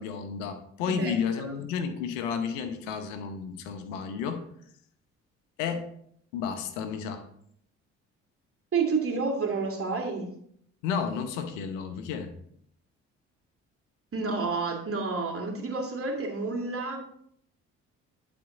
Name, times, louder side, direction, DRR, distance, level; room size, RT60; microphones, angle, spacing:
voice 1, 0.0-4.5 5.6-5.9 6.3-7.2 10.8-12.3, left 6 dB, 80° left, 8 dB, 0.9 m, -32 dB
voice 2, 0.9-1.5 8.7-10.3 14.1-17.0, right 4 dB, 35° right, 1 dB, 2.7 m, -30 dB
11.5 x 4.4 x 3.9 m, 0.68 s
hypercardioid pair, 50°, 36 cm